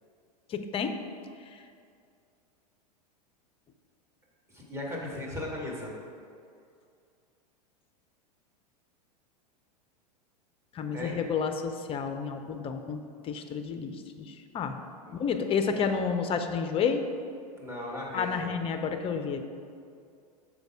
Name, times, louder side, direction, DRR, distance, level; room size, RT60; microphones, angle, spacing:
voice 1, 0.5-1.0 10.7-14.8 15.1-17.0 18.1-19.4, left 6 dB, 25° left, 7 dB, 0.6 m, -30 dB
voice 2, 4.5-5.9 10.9-11.2 15.1-15.2 17.6-18.6, left 1 dB, 15° right, -4 dB, 1.8 m, -37 dB
6.5 x 5.0 x 4.8 m, 2.3 s
hypercardioid pair, 95°, 21 cm